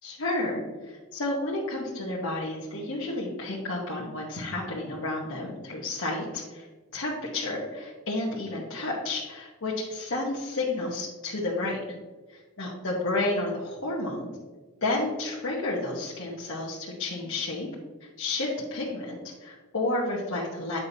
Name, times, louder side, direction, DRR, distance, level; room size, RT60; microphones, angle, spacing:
voice 1, 0.0-6.7 6.9-11.8 12.3-14.3 14.8-17.7 18.2-20.8, left 2 dB, 60° left, -5 dB, 1.0 m, -31 dB
8.4 x 5.6 x 2.7 m, 1.3 s
head